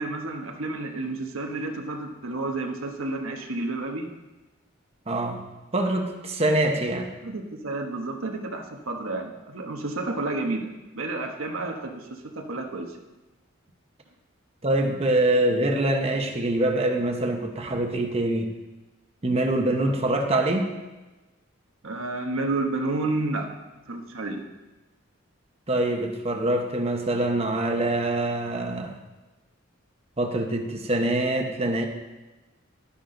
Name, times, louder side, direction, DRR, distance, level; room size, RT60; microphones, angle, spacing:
voice 1, 0.0-4.1 7.2-13.0 21.8-23.5 23.9-24.4, right 2 dB, 85° right, 3 dB, 1.2 m, -30 dB
voice 2, 5.1-5.4 5.7-7.1 14.6-18.5 19.2-20.7 25.7-29.0 30.2-31.9, right 1 dB, 30° right, 3 dB, 1.0 m, -24 dB
12.0 x 9.9 x 3.9 m, 1.1 s
head